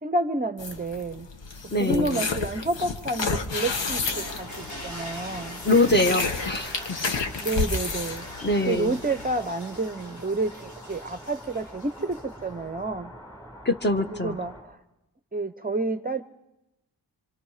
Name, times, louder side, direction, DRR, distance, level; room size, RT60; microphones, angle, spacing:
voice 1, 0.0-1.3 1.8-5.6 7.4-13.1 14.1-14.8 15.3-16.2, right 2 dB, 20° right, 10 dB, 0.7 m, -29 dB
sound 1, 0.6-9.3, left 4 dB, 85° left, 1.6 m, -31 dB
voice 2, 1.7-2.2 5.6-7.3 8.4-8.9 13.6-14.4, left 2 dB, 25° left, 6 dB, 1.3 m, -24 dB
sound 2, 4.0-12.5, left 1 dB, 40° left, 4.4 m, -43 dB
sound 3, 4.4-14.6, equal, 5° left, 5.9 m, -45 dB
26.5 x 25.5 x 4.9 m, 0.94 s
wide cardioid pair, 145°, 43 cm